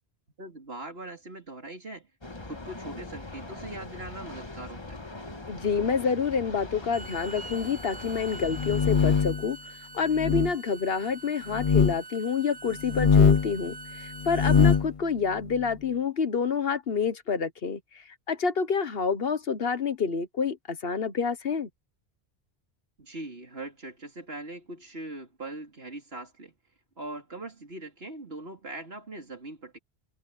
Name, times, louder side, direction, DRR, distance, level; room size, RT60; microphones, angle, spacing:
voice 1, 0.4-2.1 2.4-5.0 23.0-26.5 27.0-29.8, right 2 dB, 70° right, 3.8 m, -41 dB
sound 1, 2.2-9.2, left 2 dB, 25° left, 1.5 m, -41 dB
voice 2, 5.5-17.8 18.3-21.7, left 5 dB, 65° left, 1.4 m, -28 dB
Bowed string instrument, 6.8-14.8, right 3 dB, 25° right, 0.9 m, -44 dB
sound 2, 8.4-9.4 10.1-10.5 11.5-12.0 12.8-13.5 14.2-14.9, left 6 dB, 45° left, 0.5 m, -22 dB
omnidirectional pair, 1.1 m